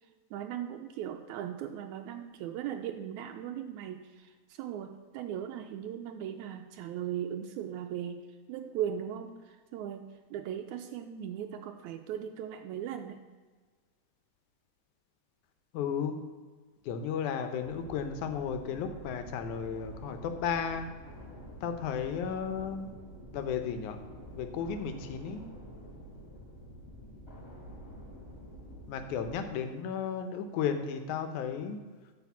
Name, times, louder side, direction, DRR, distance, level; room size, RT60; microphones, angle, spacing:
voice 1, 0.3-10.0 10.3-13.2, right 10 dB, 85° right, 5 dB, 1.9 m, -38 dB
voice 2, 15.7-16.1 16.8-20.9 21.6-22.9 23.3-24.0 24.3-25.5 28.9-31.8, left 7 dB, 85° left, 7 dB, 2.2 m, -34 dB
sound 1, 17.6-29.5, equal, 25° left, 3.3 m, -48 dB
9.5 x 5.0 x 7.1 m, 1.4 s
omnidirectional pair, 3.4 m